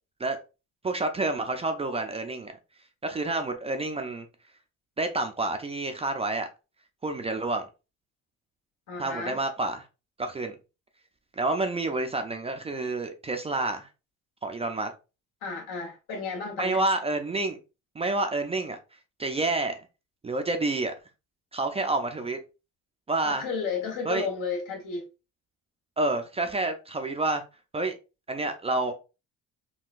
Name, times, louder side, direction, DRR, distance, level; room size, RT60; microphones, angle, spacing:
voice 1, 0.8-2.5 3.0-4.3 5.0-6.5 7.0-7.6 9.0-9.9 10.2-10.5 11.3-13.9 14.4-14.9 16.6-17.6 18.0-18.8 19.2-19.9 20.2-20.9 21.5-22.4 23.1-23.4 24.1-24.3 26.0-27.4 27.7-28.0 28.3-28.9, right 2 dB, 20° right, 0.4 m, -28 dB
voice 2, 8.9-9.4 15.4-16.8 23.2-25.1, left 5 dB, 70° left, 1.3 m, -33 dB
3.7 x 2.2 x 2.4 m
cardioid pair, 95°, 33 cm